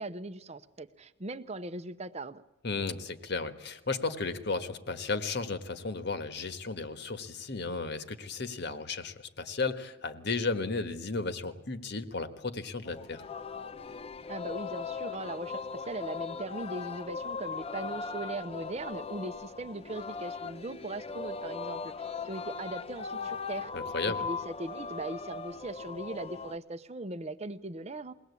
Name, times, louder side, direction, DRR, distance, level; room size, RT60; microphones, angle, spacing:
voice 1, 0.0-2.4 14.3-23.7 24.1-28.1, right 2 dB, 30° right, 11 dB, 0.8 m, -39 dB
voice 2, 2.6-13.2 23.7-24.3, left 3 dB, 55° left, 10 dB, 1.4 m, -34 dB
Singing, 12.9-26.6, left 5 dB, 30° left, 0.7 m, -39 dB
22.5 x 18.0 x 8.3 m, 1.0 s
head